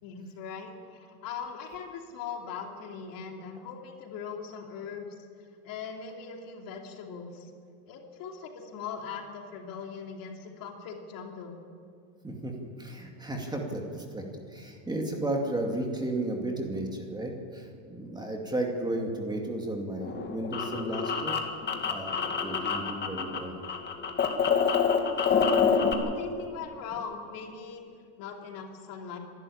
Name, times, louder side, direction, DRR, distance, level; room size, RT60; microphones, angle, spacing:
voice 1, 0.0-5.3 5.6-7.5 7.9-11.5 24.9-27.9 28.2-29.2, left 6 dB, 50° left, 2 dB, 2.8 m, -40 dB
voice 2, 12.2-21.4 21.9-23.5, right 1 dB, 10° right, 1 dB, 2.4 m, -34 dB
sound 1, 20.0-23.4 23.6-25.9, left 6 dB, 25° left, 2.0 m, -26 dB
25.5 x 12.0 x 8.7 m, 2.3 s
supercardioid pair, 130°, 42 cm